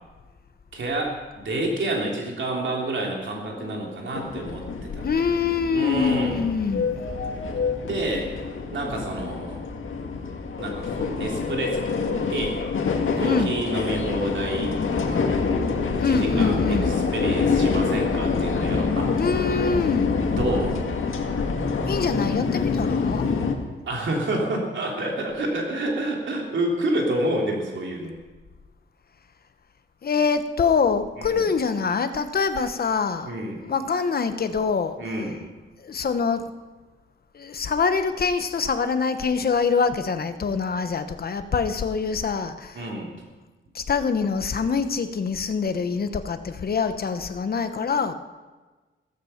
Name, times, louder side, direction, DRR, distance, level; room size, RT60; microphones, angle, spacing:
voice 1, 0.7-5.1 5.7-6.4 7.8-8.3 8.7-9.6 10.6-12.6 13.1-15.2 16.0-19.1 20.3-20.9 23.9-28.1 31.2-31.5 33.2-33.6 35.0-35.3 42.7-43.1, right 1 dB, 65° right, -1 dB, 3.3 m, -28 dB
voice 2, 3.5-4.0 5.0-6.9 13.2-13.6 16.0-17.0 19.1-20.2 21.9-23.3 30.0-35.0 35.8-36.5 37.3-42.8 43.7-48.1, left 5 dB, 45° left, 9 dB, 1.0 m, -25 dB
sound 1, 4.1-23.5, left 4 dB, 75° left, 2.0 m, -26 dB
16.0 x 14.5 x 5.8 m, 1.3 s
wide cardioid pair, 140°, 21 cm